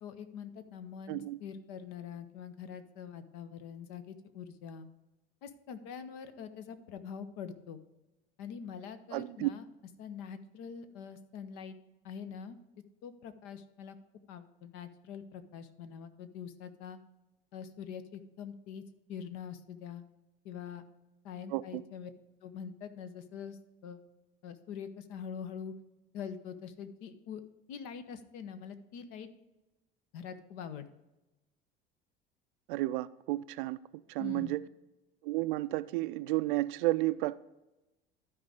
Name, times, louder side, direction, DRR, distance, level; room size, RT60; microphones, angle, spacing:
voice 1, 0.0-4.9 5.4-7.8 8.4-9.6 10.0-11.8 12.0-12.6 13.0-14.0 14.3-17.0 17.5-18.8 19.1-20.0 20.4-20.8 21.2-22.1 22.4-24.0 24.4-25.7 26.1-27.4 27.7-29.3 30.1-30.9 34.2-34.5, left 7 dB, 55° left, 0.9 m, -44 dB
voice 2, 1.1-1.4 9.1-9.5 21.5-21.8 32.7-33.8 34.1-34.6 35.2-37.3, right 18 dB, 60° right, 0.4 m, -32 dB
12.0 x 4.8 x 5.0 m
figure-of-eight pair, 65°, 29 cm